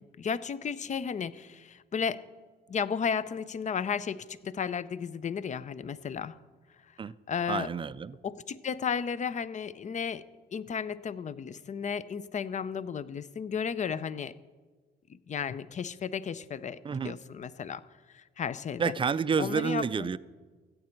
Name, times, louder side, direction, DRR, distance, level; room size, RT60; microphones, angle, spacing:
voice 1, 0.2-2.2 2.7-6.3 7.3-7.7 8.2-10.2 10.5-14.3 15.1-17.8 18.1-18.9 19.4-20.1, left 7 dB, 40° left, 17 dB, 0.5 m, -34 dB
voice 2, 7.5-8.2 16.8-17.1 18.8-20.2, right 6 dB, 25° right, 18 dB, 0.4 m, -29 dB
14.5 x 8.6 x 4.5 m, 1.4 s
cardioid pair, 90°, 20 cm